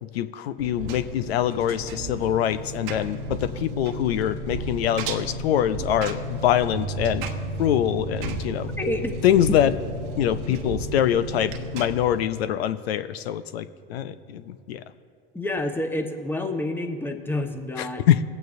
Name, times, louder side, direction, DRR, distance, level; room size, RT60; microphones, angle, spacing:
voice 1, 0.0-7.3 7.6-8.7 9.2-9.7 10.2-14.8 17.8-18.2, left 10 dB, 85° left, 13 dB, 0.5 m, -24 dB
Engine, 0.6-12.2, right 1 dB, 70° right, 1.1 m, -34 dB
Piano, 6.7-14.8, right 6 dB, 35° right, 0.6 m, -40 dB
voice 2, 8.8-9.1 10.5-10.7 15.3-18.0, left 1 dB, 5° left, 5 dB, 1.1 m, -29 dB
20.0 x 9.1 x 2.6 m, 2.2 s
hypercardioid pair, 85°, 30 cm